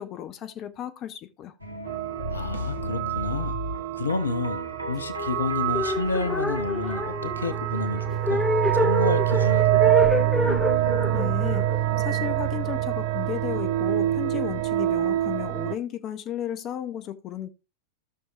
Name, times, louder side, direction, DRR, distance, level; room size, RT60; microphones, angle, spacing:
voice 1, 0.0-1.5 11.1-11.7 12.0-17.5, left 10 dB, 35° left, 0.9 m, -34 dB
sound 1, 1.6-8.0 9.4-13.1, equal, 90° left, 1.2 m, -37 dB
sound 2, 1.9-15.7, right 13 dB, 50° right, 0.5 m, -26 dB
voice 2, 2.3-3.6 3.9-8.4 8.7-10.1, left 3 dB, 75° left, 0.8 m, -30 dB
sound 3, 5.6-12.8, left 2 dB, 5° left, 0.4 m, -28 dB
16.0 x 6.3 x 2.4 m
figure-of-eight pair, 90°, 0 cm